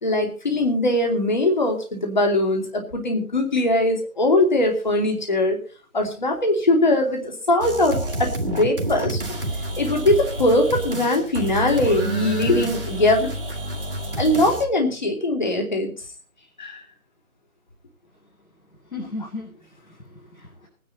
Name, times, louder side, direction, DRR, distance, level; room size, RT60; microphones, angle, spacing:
voice 1, 0.0-5.6 5.9-9.2 9.8-13.3 14.2-15.9 16.6-16.8, left 1 dB, 30° left, 3 dB, 2.8 m, -21 dB
sound 1, 7.6-14.7, right 1 dB, 40° right, 1.8 m, -29 dB
voice 2, 18.9-20.7, left 2 dB, 70° left, -3 dB, 7.4 m, -36 dB
21.0 x 10.0 x 4.1 m, 0.38 s
figure-of-eight pair, 170°, 42 cm